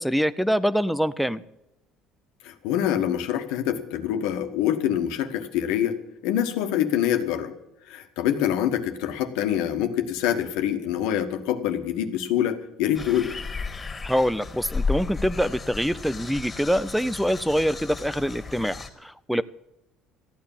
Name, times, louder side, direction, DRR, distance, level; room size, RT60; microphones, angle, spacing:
voice 1, 0.0-1.4 14.0-19.4, equal, ahead, 16 dB, 0.5 m, -25 dB
voice 2, 2.4-6.0 6.2-7.5 7.9-13.3, left 10 dB, 80° left, 7 dB, 1.5 m, -25 dB
sound 1, 12.9-18.9, left 4 dB, 25° left, 2.7 m, -33 dB
14.5 x 9.4 x 7.2 m, 0.87 s
supercardioid pair, 95°, 0 cm